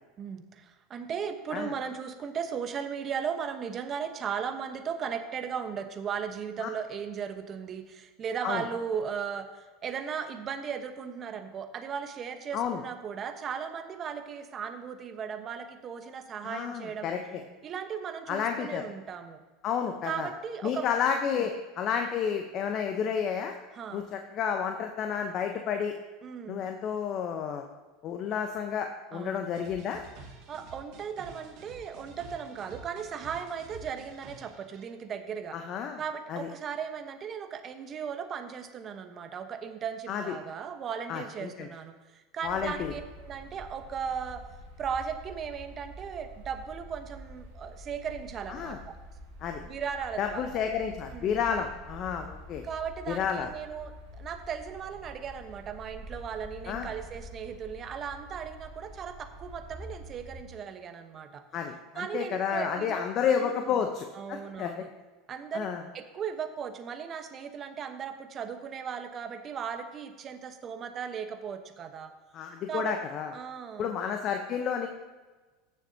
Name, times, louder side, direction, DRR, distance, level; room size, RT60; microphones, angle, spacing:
voice 1, 0.2-17.1 17.6-19.4 20.0-20.9 21.3-21.5 23.7-24.0 26.2-26.7 29.1-29.6 30.5-35.6 36.0-44.4 44.8-49.0 49.6-50.6 51.1-51.4 52.6-61.4 61.9-63.0 63.4-63.8 64.1-64.9 65.3-65.7 65.9-72.1 72.7-72.9 73.3-74.0, right 7 dB, 40° right, 7 dB, 1.1 m, -37 dB
voice 2, 16.4-17.2 18.3-18.9 19.6-20.3 20.6-23.5 23.9-25.9 26.5-27.6 28.0-30.0 35.5-36.0 36.3-36.5 40.1-40.3 41.1-41.7 42.4-42.9 48.5-48.8 49.4-49.6 50.2-52.6 53.1-53.5 56.7-56.9 61.5-64.7 65.5-65.8 72.3-73.3 73.8-74.9, left 7 dB, 45° left, 5 dB, 0.8 m, -31 dB
sound 1, 29.5-34.9, right 4 dB, 60° right, 2.2 m, -50 dB
sound 2, 42.4-60.4, equal, 80° right, 2.7 m, -47 dB
16.0 x 7.0 x 2.8 m, 1.3 s
hypercardioid pair, 90°, 0 cm